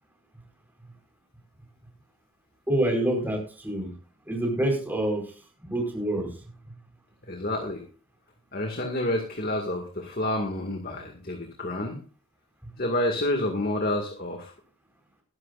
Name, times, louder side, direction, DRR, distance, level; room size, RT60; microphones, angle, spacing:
voice 1, 2.7-3.9 4.3-5.3 5.6-6.4 12.6-12.7, right 1 dB, 10° right, 1 dB, 4.5 m, -27 dB
voice 2, 7.3-7.8 8.5-12.0 12.8-14.5, left 1 dB, 40° left, 3 dB, 2.1 m, -29 dB
20.5 x 11.5 x 2.6 m, 0.37 s
head